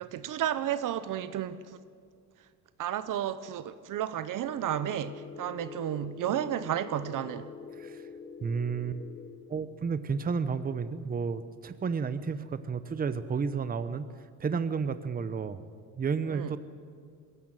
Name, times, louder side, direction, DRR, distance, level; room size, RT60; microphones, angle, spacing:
voice 1, 0.0-1.6 2.8-7.5 16.3-16.5, right 11 dB, 50° right, 14 dB, 0.9 m, -32 dB
sound 1, 4.4-9.4, left 5 dB, 20° left, 2.6 m, -45 dB
voice 2, 7.7-8.0 8.4-9.0 9.5-14.1 14.4-15.6 16.0-16.6, right 5 dB, 20° right, 12 dB, 0.9 m, -31 dB
21.0 x 16.5 x 9.2 m, 2.2 s
cardioid pair, 115°, 39 cm